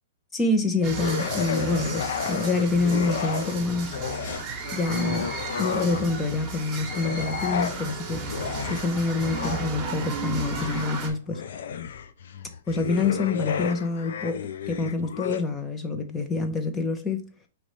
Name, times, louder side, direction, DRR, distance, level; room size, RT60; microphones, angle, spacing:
voice 1, 0.3-4.0 4.7-5.3 5.6-8.2 8.7-11.4 12.7-14.4 14.7-17.2, left 3 dB, 15° left, 0.7 m, -26 dB
sound 1, 0.8-11.1, right 3 dB, 20° right, 1.2 m, -34 dB
sound 2, 1.0-3.6 3.9-6.3 6.8-15.4, left 7 dB, 70° left, 0.5 m, -32 dB
5.2 x 3.1 x 3.2 m
hypercardioid pair, 155°, 0 cm